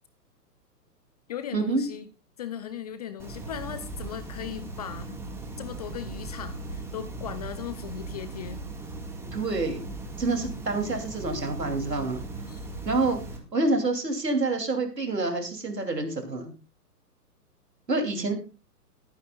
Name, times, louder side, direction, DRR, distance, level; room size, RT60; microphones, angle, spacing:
voice 1, 1.3-2.1 2.4-5.2 5.6-8.6 12.5-12.6, left 9 dB, 25° left, 12 dB, 0.5 m, -37 dB
sound 1, 3.2-13.4, right 2 dB, 5° right, 1.7 m, -38 dB
voice 2, 9.3-9.8 10.2-12.2 12.8-13.2 13.5-16.5 17.9-18.3, right 3 dB, 85° right, 5 dB, 3.0 m, -27 dB
21.5 x 9.5 x 2.3 m, 0.32 s
figure-of-eight pair, 120°, 48 cm